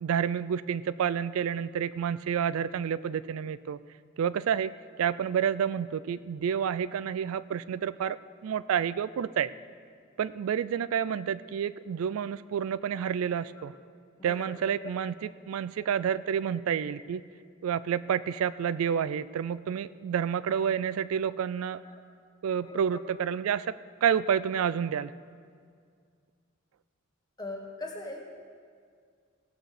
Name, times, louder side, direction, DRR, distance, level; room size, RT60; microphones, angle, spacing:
voice 1, 0.0-3.8 4.2-4.7 5.0-9.5 10.2-13.7 14.2-15.1 15.5-17.2 17.6-21.8 22.4-25.1, right 8 dB, 90° right, 16 dB, 0.3 m, -29 dB
voice 2, 13.3-13.9 14.2-14.5 14.8-14.9 15.8-15.9 16.1-16.2 16.9-17.0 21.8-22.0 22.6-22.8 27.4-28.2, left 2 dB, 20° left, 0 dB, 1.6 m, -41 dB
17.0 x 6.1 x 6.6 m, 2.1 s
head